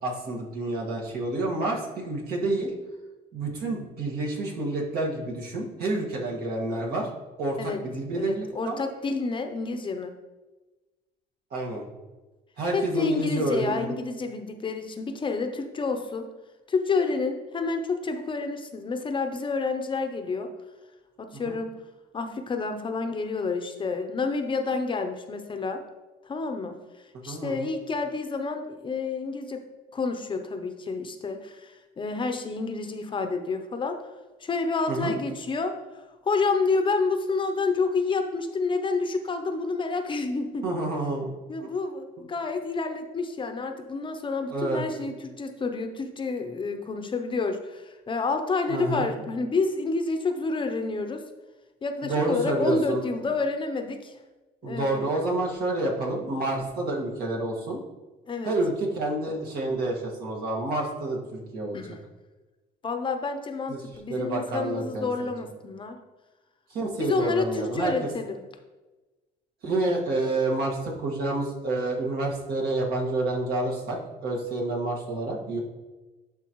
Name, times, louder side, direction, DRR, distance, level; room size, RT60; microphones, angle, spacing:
voice 1, 0.0-2.7 3.3-7.1 7.4-8.8 11.5-11.8 12.6-13.9 21.3-21.6 27.2-27.7 34.9-35.1 40.6-41.3 41.6-41.7 44.5-44.8 48.7-49.1 52.0-53.0 54.6-57.8 58.4-61.8 63.7-63.8 64.1-65.1 66.7-67.9 69.6-75.6, right 2 dB, 65° right, -2 dB, 1.8 m, -28 dB
voice 2, 8.1-10.1 12.7-16.3 16.7-20.5 21.2-21.8 22.1-25.8 26.2-26.8 27.2-29.6 29.9-34.0 34.4-35.7 36.2-40.6 41.5-51.2 51.8-54.2 54.6-55.1 58.3-58.5 61.7-62.0 62.8-66.0 67.0-68.4, left 4 dB, 30° left, 6 dB, 0.6 m, -29 dB
11.0 x 4.0 x 3.0 m, 1.2 s
cardioid pair, 110°, 17 cm